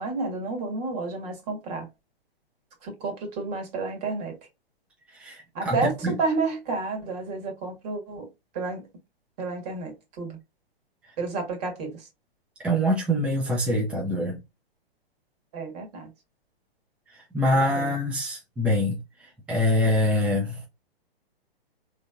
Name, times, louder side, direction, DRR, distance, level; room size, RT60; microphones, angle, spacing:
voice 1, 0.0-1.9 2.8-4.4 5.6-8.3 8.6-8.8 9.4-10.4 11.2-11.9 15.5-16.1 17.5-17.9, right 3 dB, 40° right, 1.7 m, -30 dB
voice 2, 5.2-5.8 6.0-6.1 12.6-14.4 17.3-19.0 19.5-20.7, left 1 dB, 5° right, 0.6 m, -24 dB
3.9 x 3.3 x 2.4 m
figure-of-eight pair, 125°, 30 cm